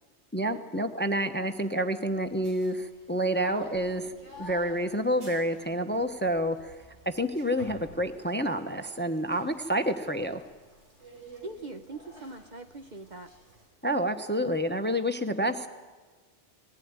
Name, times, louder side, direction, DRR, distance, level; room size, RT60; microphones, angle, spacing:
voice 1, 0.3-6.8 7.1-10.4 13.8-15.7, equal, 10° left, 8 dB, 0.7 m, -29 dB
sound 1, 2.0-13.7, right 1 dB, 70° right, 5.5 m, -51 dB
voice 2, 11.4-13.3 14.4-14.6, right 2 dB, 45° right, 8 dB, 0.8 m, -42 dB
20.0 x 15.5 x 9.5 m, 1.4 s
omnidirectional pair, 1.2 m